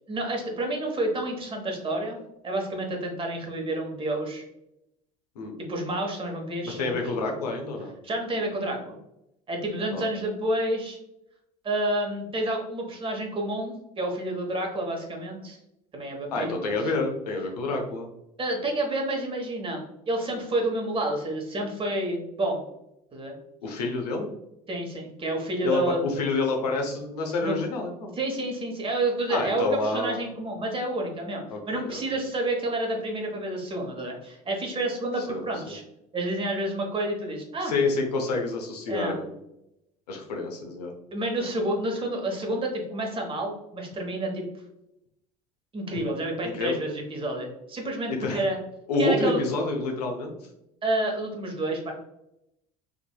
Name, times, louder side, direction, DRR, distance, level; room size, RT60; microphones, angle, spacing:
voice 1, 0.1-2.2 2.4-4.4 5.6-7.0 8.0-9.0 9.5-11.0 11.6-15.6 15.9-16.8 18.4-22.6 23.1-23.3 24.7-26.0 27.4-27.6 28.2-35.8 36.1-37.7 38.9-39.2 41.1-44.5 45.7-48.6 49.0-49.4 50.8-51.9, right 1 dB, 25° right, 1 dB, 1.0 m, -29 dB
voice 2, 6.6-7.9 9.9-10.0 16.3-18.1 23.6-24.3 25.6-28.1 29.3-30.3 31.5-32.0 35.2-35.8 37.6-39.4 40.1-40.9 46.4-46.8 48.2-48.4 48.9-50.3, left 3 dB, 85° left, 2 dB, 0.7 m, -28 dB
3.6 x 2.9 x 2.2 m, 0.84 s
hypercardioid pair, 75°, 20 cm